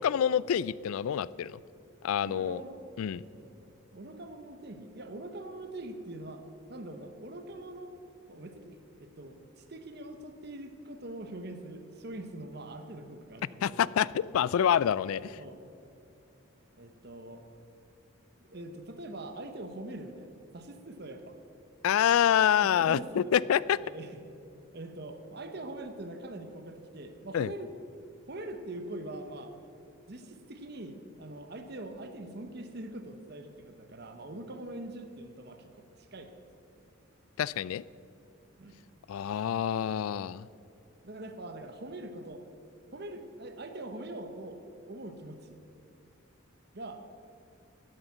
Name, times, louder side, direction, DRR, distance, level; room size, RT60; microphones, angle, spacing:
voice 1, 0.0-1.6 2.0-2.6 3.0-3.2 13.6-15.4 21.8-23.8 27.3-27.5 37.4-37.8 39.1-40.5, left 9 dB, 80° left, 21 dB, 0.3 m, -27 dB
voice 2, 2.2-2.8 3.3-6.4 6.7-7.9 8.3-14.3 15.3-15.6 16.8-17.4 18.5-21.4 22.6-23.3 23.8-24.2 24.7-27.7 28.3-29.5 30.1-36.3 38.6-38.8 41.0-42.4 42.9-44.6 44.9-45.6 46.7-47.1, right 1 dB, 50° right, 7 dB, 1.0 m, -43 dB
12.0 x 7.8 x 7.2 m, 2.7 s
head